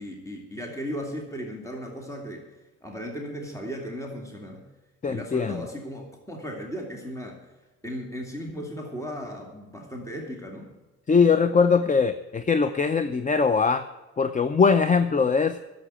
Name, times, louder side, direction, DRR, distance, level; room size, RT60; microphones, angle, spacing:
voice 1, 0.0-2.4 2.8-4.6 5.0-7.4 7.8-10.7, equal, 10° left, 1 dB, 2.4 m, -36 dB
voice 2, 5.0-5.6 11.1-13.8 14.2-15.6, left 5 dB, 25° left, 11 dB, 0.6 m, -21 dB
11.0 x 7.7 x 8.8 m, 1.2 s
cardioid pair, 90°, 30 cm